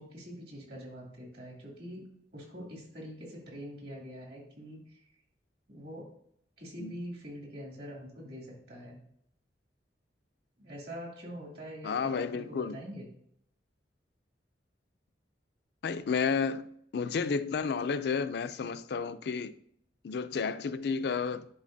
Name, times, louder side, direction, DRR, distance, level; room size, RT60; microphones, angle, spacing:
voice 1, 0.0-2.0 2.3-5.1 5.7-6.1 6.6-9.0 10.6-13.1, equal, 65° right, 2.6 m, -44 dB
voice 2, 11.8-12.8 15.8-19.5 20.0-21.5, left 5 dB, 65° left, 0.4 m, -31 dB
10.5 x 4.2 x 2.6 m
head